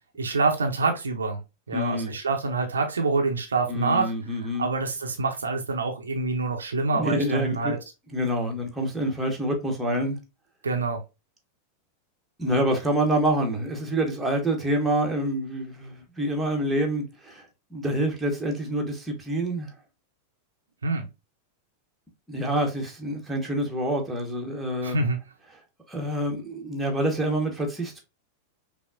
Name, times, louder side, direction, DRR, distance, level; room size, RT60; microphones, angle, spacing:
voice 1, 0.2-1.4 1.7-4.1 4.6-7.8 10.6-11.0 20.8-21.1 24.8-25.2, right 3 dB, 70° right, 0.6 m, -26 dB
voice 2, 1.7-2.1 3.7-4.7 6.9-7.8 8.1-10.2 12.4-19.7 22.3-25.0 25.9-28.0, right 1 dB, 5° right, 1.0 m, -27 dB
5.5 x 2.1 x 2.3 m
figure-of-eight pair, 90°, 0 cm